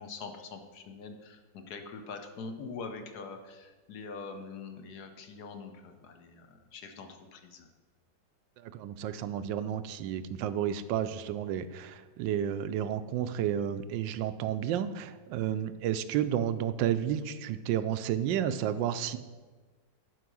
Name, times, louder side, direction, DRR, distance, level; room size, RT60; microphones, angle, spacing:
voice 1, 0.0-7.7, left 4 dB, 65° left, 6 dB, 1.3 m, -44 dB
voice 2, 8.6-19.2, right 10 dB, 90° right, 12 dB, 1.3 m, -31 dB
11.0 x 4.8 x 6.1 m, 1.3 s
omnidirectional pair, 1.9 m